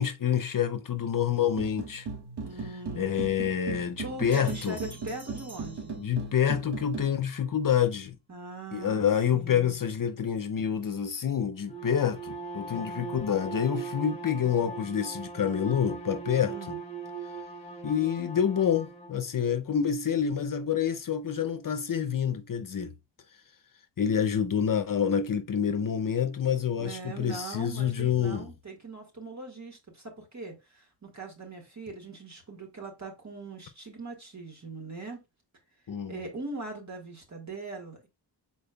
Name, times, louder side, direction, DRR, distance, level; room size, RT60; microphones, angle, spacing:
voice 1, 0.0-2.1 2.9-4.8 6.0-8.2 8.7-16.5 17.8-22.9 24.0-28.5 35.9-36.2, left 8 dB, 50° left, 0.5 m, -27 dB
sound 1, 1.5-7.1, right 4 dB, 65° right, 1.1 m, -38 dB
voice 2, 2.4-3.3 4.0-5.9 8.3-9.0 9.3-9.8 16.5-16.8 26.8-35.2 36.1-38.1, right 3 dB, 40° right, 1.7 m, -41 dB
sound 2, 4.3-6.5, right 1 dB, 20° right, 1.7 m, -51 dB
Bowed string instrument, 11.6-19.2, right 4 dB, 15° left, 1.2 m, -39 dB
5.3 x 4.3 x 2.2 m
wide cardioid pair, 90°, 43 cm